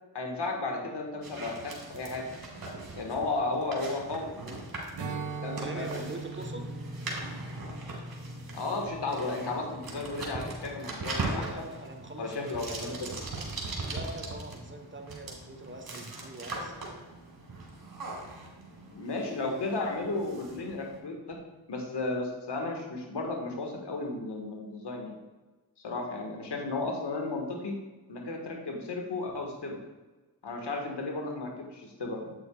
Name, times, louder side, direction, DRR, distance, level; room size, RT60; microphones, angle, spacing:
voice 1, 0.1-2.3 2.9-4.3 5.0-6.1 8.5-11.7 12.2-13.2 18.9-21.4 21.7-25.1 25.8-27.7 28.1-29.8 30.4-32.3, left 3 dB, 70° left, 1 dB, 1.8 m, -34 dB
sound 1, 1.2-21.0, right 2 dB, 55° right, 2.5 m, -40 dB
Strum, 5.0-10.4, right 5 dB, 75° right, 1.2 m, -42 dB
voice 2, 5.6-6.7 11.2-13.0 13.8-16.7, right 2 dB, 25° right, 5 dB, 1.1 m, -43 dB
Emin full, 6.4-18.6 18.9-19.1 20.8-20.9, left 1 dB, 5° right, 0.7 m, -48 dB
8.4 x 8.0 x 2.4 m, 1.2 s
supercardioid pair, 40°, 43 cm